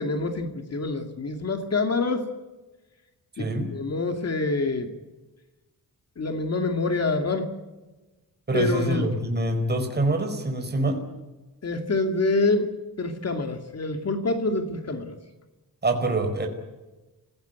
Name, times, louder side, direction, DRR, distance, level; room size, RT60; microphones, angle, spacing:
voice 1, 0.0-2.3 3.4-4.9 6.2-7.5 8.5-9.1 11.6-12.7 13.0-15.2, left 3 dB, 45° left, 6 dB, 2.5 m, -26 dB
voice 2, 3.3-3.7 8.5-11.0 15.8-16.5, right 2 dB, 30° right, 4 dB, 4.8 m, -25 dB
28.5 x 16.5 x 9.4 m, 1.1 s
wide cardioid pair, 135°, 35 cm